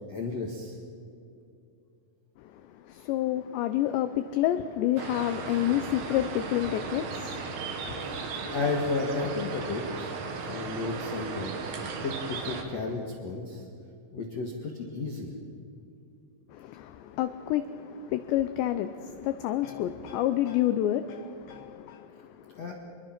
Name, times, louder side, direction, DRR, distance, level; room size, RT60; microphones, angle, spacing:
voice 1, 0.1-0.8 8.1-8.2 8.5-13.7 14.1-15.3 22.6-22.7, left 3 dB, 65° left, 1.6 m, -33 dB
voice 2, 2.4-8.5 16.5-22.6, left 12 dB, 90° left, 2.5 m, -29 dB
sound 1, 5.0-12.6, right 5 dB, 60° right, 3.5 m, -36 dB
26.5 x 21.5 x 6.0 m
omnidirectional pair, 6.0 m